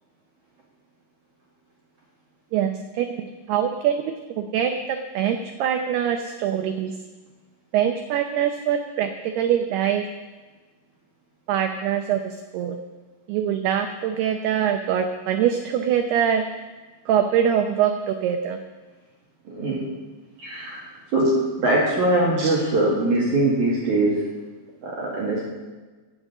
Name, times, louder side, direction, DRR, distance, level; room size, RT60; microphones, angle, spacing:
voice 1, 2.5-4.1 4.4-7.0 7.7-10.1 11.5-12.8 13.3-16.4 17.1-18.6 22.4-22.5, right 9 dB, 85° right, 5 dB, 2.3 m, -23 dB
voice 2, 19.5-19.8 20.4-24.3 24.8-25.4, right 2 dB, 50° right, -4 dB, 2.7 m, -22 dB
17.0 x 6.7 x 8.3 m, 1.3 s
omnidirectional pair, 5.6 m